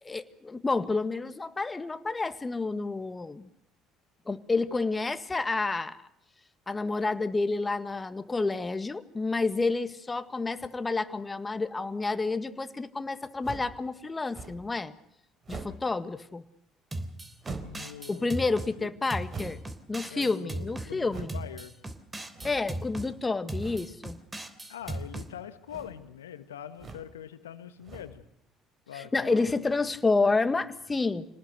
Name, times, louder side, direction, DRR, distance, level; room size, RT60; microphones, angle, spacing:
voice 1, 0.0-3.5 4.3-6.0 6.7-14.9 15.5-16.4 18.1-19.6 19.9-21.3 22.4-24.2 29.0-31.3, left 3 dB, 20° left, 11 dB, 1.7 m, -29 dB
sound 1, 13.4-13.8 14.3-14.7 15.4-15.9 17.4-17.9 19.3-19.8 21.1-21.4 22.3-22.8 23.6-23.9 24.8-25.2 25.6-26.0 26.7-27.1 27.8-28.2, right 3 dB, 40° right, 4.2 m, -42 dB
sound 2, 16.9-18.7 19.1-20.9 21.3-23.1 23.5-25.3, right 1 dB, 20° right, 3.1 m, -38 dB
voice 2, 17.6-19.2 20.1-21.7 24.7-28.2 28.9-29.5, left 10 dB, 85° left, 11 dB, 1.5 m, -43 dB
27.0 x 19.0 x 6.6 m, 0.79 s
hypercardioid pair, 60°, 0 cm